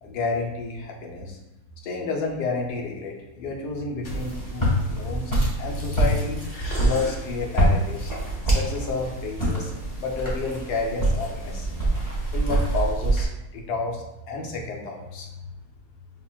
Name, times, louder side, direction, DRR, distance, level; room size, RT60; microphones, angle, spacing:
voice 1, 0.0-1.4 1.8-5.3 5.6-6.4 6.8-8.1 8.5-9.7 10.0-11.9 12.3-13.3 13.5-15.3, left 3 dB, 75° left, 0 dB, 1.1 m, -30 dB
sound 1, 4.0-12.9, right 1 dB, 45° left, 0.9 m, -38 dB
Walk footsteps, 4.1-13.3, right 1 dB, 15° left, 1.0 m, -25 dB
5.5 x 2.4 x 2.3 m, 0.95 s
omnidirectional pair, 1.8 m